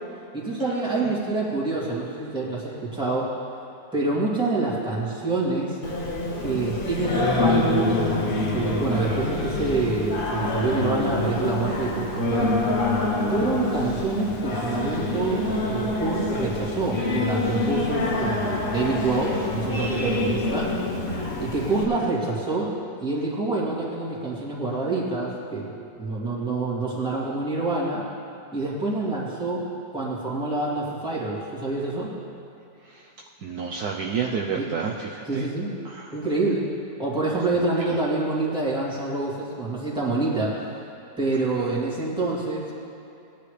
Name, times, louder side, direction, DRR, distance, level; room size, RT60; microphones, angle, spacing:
voice 1, 0.3-3.3 3.9-5.8 6.4-12.6 13.3-15.4 15.7-20.7 21.4-22.7 23.0-28.0 28.5-29.7 29.9-32.1 34.6-34.7 35.3-35.7 36.1-36.7 37.0-40.6 41.2-42.7, right 3 dB, 5° right, -7 dB, 2.3 m, -27 dB
Singing, 5.8-21.8, left 2 dB, 35° left, 1.0 m, -26 dB
voice 2, 33.4-35.5 35.8-36.2 37.5-37.6 41.6-41.8, right 6 dB, 65° right, -1 dB, 1.2 m, -30 dB
18.5 x 10.0 x 3.3 m, 2.8 s
omnidirectional pair, 1.9 m